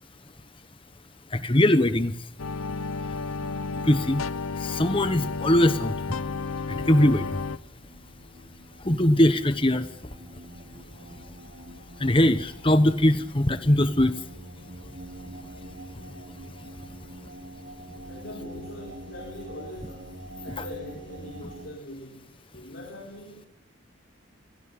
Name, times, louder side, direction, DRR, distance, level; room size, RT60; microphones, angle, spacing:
voice 1, 1.3-2.1 3.8-4.2 4.6-5.9 6.7-7.3 8.8-9.9 12.0-14.1 20.6-20.7, left 1 dB, 25° left, 11 dB, 1.1 m, -21 dB
sound 1, 2.4-7.6, left 4 dB, 85° left, 0.8 m, -32 dB
sound 2, 4.7-21.7, right 1 dB, 55° right, 4.2 m, -45 dB
voice 2, 18.1-23.4, left 1 dB, 55° left, -2 dB, 4.6 m, -42 dB
24.0 x 17.0 x 8.5 m, 0.79 s
head